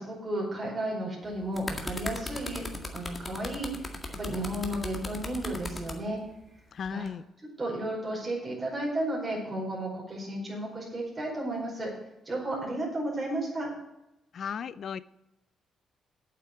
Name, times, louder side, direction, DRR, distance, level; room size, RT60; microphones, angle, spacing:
voice 1, 0.0-6.2 6.9-7.1 7.6-11.9 12.2-13.7, right 1 dB, 25° right, -3 dB, 4.6 m, -33 dB
sound 1, 1.3-6.0 6.8-7.1, left 2 dB, 25° left, 1.9 m, -37 dB
voice 2, 6.7-7.2 14.3-15.0, left 7 dB, 55° left, 17 dB, 0.5 m, -35 dB
8.4 x 7.7 x 8.2 m, 0.90 s
cardioid pair, 90°, 0 cm